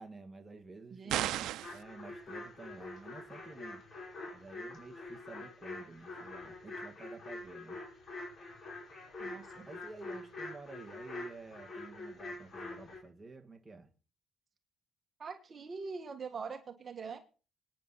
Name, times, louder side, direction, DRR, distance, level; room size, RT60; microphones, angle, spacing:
voice 1, 0.0-1.4 1.7-3.8 4.3-7.8 9.5-13.9, right 3 dB, 10° right, 1.7 m, -51 dB
voice 2, 0.9-1.5 9.2-9.7 15.2-17.2, right 5 dB, 30° right, 1.6 m, -43 dB
sound 1, 1.1-1.8, right 14 dB, 85° right, 0.6 m, -34 dB
sound 2, 1.6-13.0, left 2 dB, 35° left, 5.2 m, -45 dB
25.5 x 9.5 x 4.1 m
cardioid pair, 165°, 0 cm